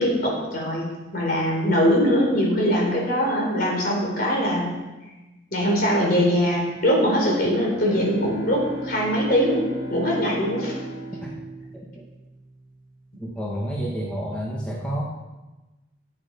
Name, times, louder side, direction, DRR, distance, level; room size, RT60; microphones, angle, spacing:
voice 1, 0.0-4.7 5.5-9.6 9.9-10.8, equal, 45° left, -2 dB, 4.0 m, -22 dB
Bowed string instrument, 7.3-12.7, right 1 dB, 20° right, 1.8 m, -37 dB
voice 2, 13.2-15.0, equal, 5° left, -5 dB, 1.4 m, -29 dB
13.5 x 8.9 x 5.4 m, 1.1 s
head